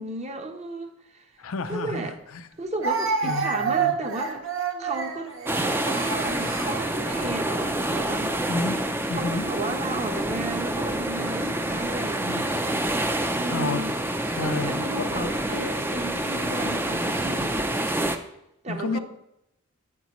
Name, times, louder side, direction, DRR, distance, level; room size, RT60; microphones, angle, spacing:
voice 1, 0.0-1.2 1.7-2.1 2.6-4.5 4.8-5.3 5.8-8.3 9.1-12.8 13.4-13.9 14.4-17.7 18.6-19.0, right 2 dB, 30° right, 5 dB, 1.0 m, -33 dB
voice 2, 1.4-2.4 3.2-3.9 8.5-8.8 9.1-9.5 13.5-13.8 14.4-15.3 18.7-19.0, left 3 dB, 80° left, 9 dB, 0.6 m, -30 dB
Speech, 1.7-1.8 2.8-7.7 8.5-8.7 9.7-10.3, right 5 dB, 65° right, 1.2 m, -29 dB
sound 1, 5.4-18.2, right 1 dB, 10° right, 0.5 m, -27 dB
11.0 x 9.3 x 3.1 m, 0.82 s
head